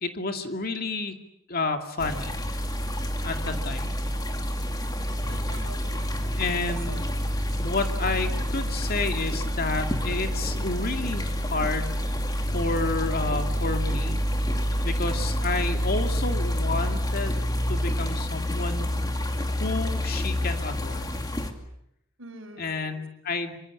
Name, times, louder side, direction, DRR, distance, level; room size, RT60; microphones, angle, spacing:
voice 1, 0.0-1.1 1.5-2.3 3.2-3.9 6.3-7.0 7.6-12.2 12.5-14.2 14.8-17.4 17.7-19.2 19.6-21.1 22.6-23.6, left 3 dB, 45° left, 5 dB, 2.5 m, -30 dB
sound 1, 2.0-21.5, equal, 20° left, 2.6 m, -28 dB
voice 2, 5.2-7.0 22.2-23.0, right 2 dB, 80° right, 3 dB, 4.8 m, -46 dB
26.0 x 25.5 x 8.6 m, 0.77 s
head